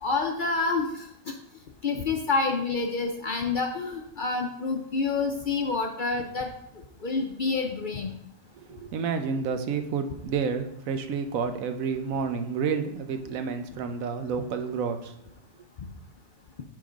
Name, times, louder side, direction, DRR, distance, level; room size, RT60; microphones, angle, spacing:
voice 1, 0.0-1.3 1.8-6.5 7.0-8.1, left 4 dB, 55° left, 3 dB, 0.6 m, -28 dB
voice 2, 8.6-15.1, right 6 dB, 90° right, 8 dB, 1.2 m, -30 dB
7.6 x 3.8 x 5.0 m, 0.77 s
omnidirectional pair, 1.4 m